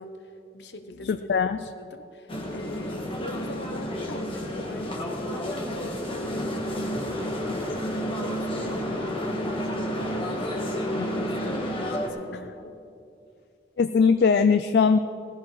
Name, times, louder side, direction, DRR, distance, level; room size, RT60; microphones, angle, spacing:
voice 1, 0.0-1.3 1.6-6.7 7.2-12.8, left 2 dB, 85° left, 7 dB, 1.0 m, -42 dB
voice 2, 1.0-1.6 7.5-7.6 11.0-11.1 12.3-12.4 13.8-15.0, left 5 dB, 70° left, 10 dB, 0.3 m, -21 dB
sound 1, 2.3-12.1, equal, 30° left, 1.4 m, -30 dB
17.5 x 15.0 x 3.2 m, 2.6 s
head